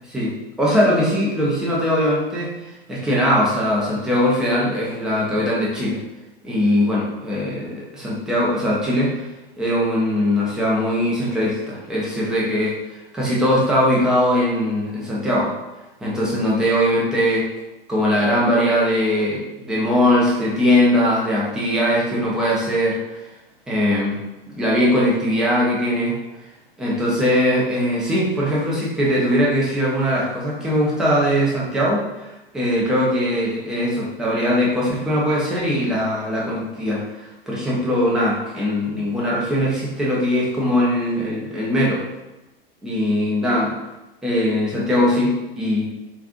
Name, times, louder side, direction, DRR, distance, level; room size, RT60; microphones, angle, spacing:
voice 1, 0.1-6.0 6.4-9.3 9.6-15.5 16.0-17.5 17.9-23.3 23.7-24.2 24.5-26.2 26.8-32.3 32.5-42.0 42.8-43.7 44.2-45.9, equal, ahead, -6 dB, 0.4 m, -20 dB
3.7 x 2.4 x 2.4 m, 1.0 s
figure-of-eight pair, 105°, 30 cm